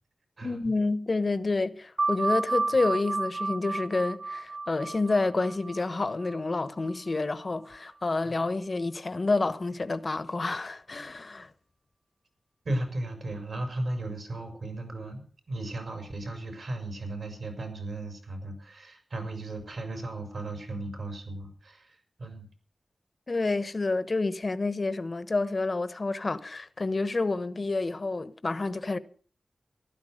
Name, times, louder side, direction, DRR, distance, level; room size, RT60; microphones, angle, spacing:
voice 1, 0.4-11.5 23.3-29.0, left 3 dB, 50° left, 1.1 m, -29 dB
sound 1, 2.0-7.2, right 3 dB, 50° right, 2.5 m, -32 dB
voice 2, 12.6-22.5, right 2 dB, 75° right, 5.5 m, -36 dB
15.0 x 12.5 x 6.5 m
wide cardioid pair, 65°, 0 cm